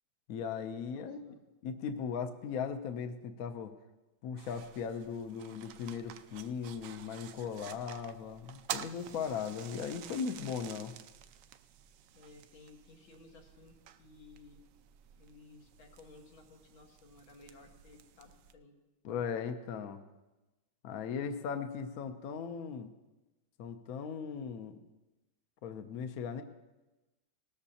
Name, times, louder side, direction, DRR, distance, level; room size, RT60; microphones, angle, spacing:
voice 1, 0.3-1.2 1.6-3.7 4.2-10.9 19.0-20.0 20.8-22.9 23.6-24.8 25.6-26.4, left 6 dB, 60° left, 8 dB, 1.0 m, -38 dB
voice 2, 0.9-1.4 12.1-14.6 15.2-18.7, left 3 dB, 85° left, 1 dB, 2.3 m, -57 dB
sound 1, 4.4-18.5, right 11 dB, 75° right, 1.1 m, -49 dB
18.5 x 13.5 x 2.8 m, 1.1 s
omnidirectional pair, 2.2 m